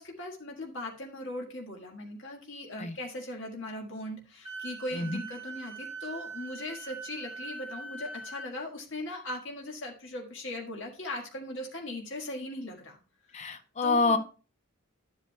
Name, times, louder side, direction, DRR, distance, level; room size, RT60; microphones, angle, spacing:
voice 1, 0.0-13.0 13.8-14.2, left 1 dB, 60° left, 0 dB, 1.6 m, -39 dB
Wind instrument woodwind instrument, 4.4-8.5, right 3 dB, 20° right, 4.8 m, -42 dB
voice 2, 13.3-14.2, left 3 dB, 35° left, 9 dB, 0.8 m, -27 dB
11.5 x 8.2 x 2.2 m, 0.35 s
head